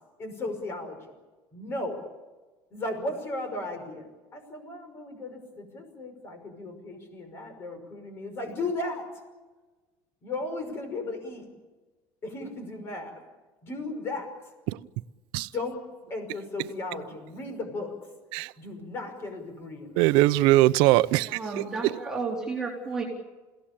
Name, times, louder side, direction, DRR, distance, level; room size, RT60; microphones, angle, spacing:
voice 1, 0.2-1.1 1.5-2.0 2.7-4.1 4.3-9.0 10.2-11.5 12.2-13.2 13.6-14.3 15.5-15.8 16.1-17.9 18.6-20.0, left 2 dB, 30° left, 5.6 m, -35 dB
voice 2, 20.0-21.9, right 17 dB, 65° right, 0.8 m, -22 dB
voice 3, 21.3-23.0, right 4 dB, 5° right, 4.0 m, -32 dB
29.5 x 17.5 x 8.7 m
cardioid pair, 175°, 9 cm